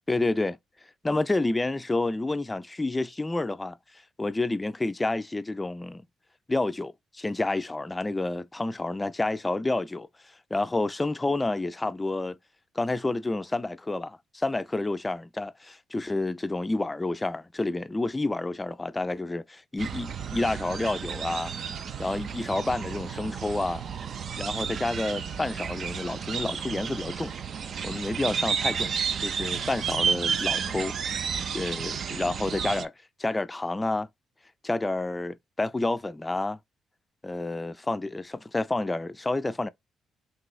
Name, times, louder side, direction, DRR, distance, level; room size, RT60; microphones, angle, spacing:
voice 1, 0.1-0.6 1.0-6.0 6.5-12.4 12.8-21.5 22.0-23.8 24.4-27.3 27.8-28.9 29.2-31.0 31.5-32.9 33.2-34.1 34.6-36.6 37.2-39.7, left 2 dB, 15° left, 0.3 m, -29 dB
sound 1, 19.8-32.8, right 6 dB, 55° right, 0.4 m, -32 dB
3.3 x 3.0 x 2.3 m
cardioid pair, 90°, 0 cm